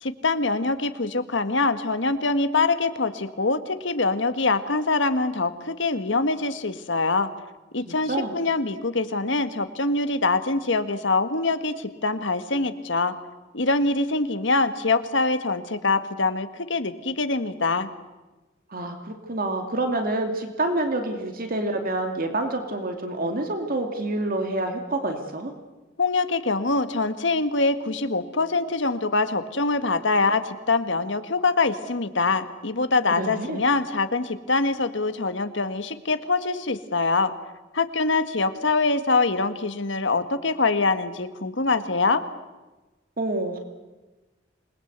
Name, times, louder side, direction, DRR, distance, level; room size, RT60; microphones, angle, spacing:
voice 1, 0.0-7.3 7.7-13.1 13.5-17.9 26.0-37.3 37.7-42.2, left 3 dB, 70° left, 10 dB, 1.6 m, -24 dB
voice 2, 7.9-8.3 18.7-25.5 33.1-33.6 43.2-43.6, right 2 dB, 50° right, 5 dB, 2.5 m, -27 dB
27.0 x 21.0 x 8.1 m, 1.1 s
head